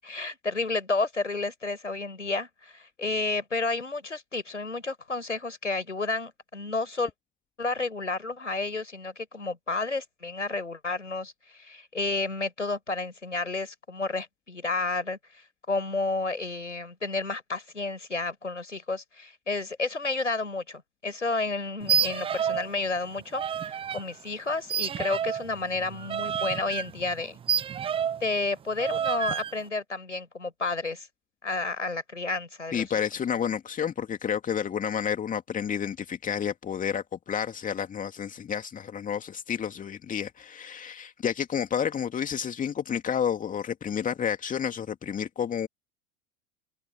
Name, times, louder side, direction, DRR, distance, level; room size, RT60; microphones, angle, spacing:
voice 1, 0.0-7.1 7.6-27.4 28.2-31.1 31.4-32.9, left 3 dB, 85° left, 6.1 m, -31 dB
sound 1, 21.8-22.7 23.0-24.0 24.7-28.3 28.8-29.5, right 8 dB, 15° right, 0.6 m, -29 dB
voice 2, 32.7-45.7, left 8 dB, 20° left, 2.5 m, -30 dB
figure-of-eight pair, 85°, 36 cm